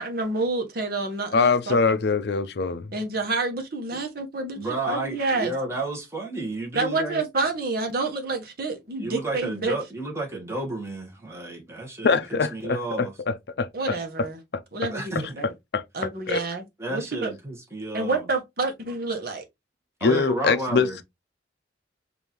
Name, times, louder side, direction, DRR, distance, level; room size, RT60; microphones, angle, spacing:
voice 1, 0.0-2.0 2.9-5.5 6.7-9.8 13.7-14.4 14.7-15.5 15.9-16.6 16.9-17.3 17.9-19.4, right 3 dB, 55° right, 1.1 m, -28 dB
voice 2, 1.3-2.9 12.0-14.3 14.5-14.6 15.7-15.8 16.3-16.4 20.0-20.9, left 4 dB, 60° left, 0.5 m, -23 dB
voice 3, 4.5-7.2 9.0-13.1 14.9-15.4 16.8-18.3 20.0-21.0, right 2 dB, 15° right, 1.4 m, -32 dB
5.1 x 2.7 x 3.0 m
head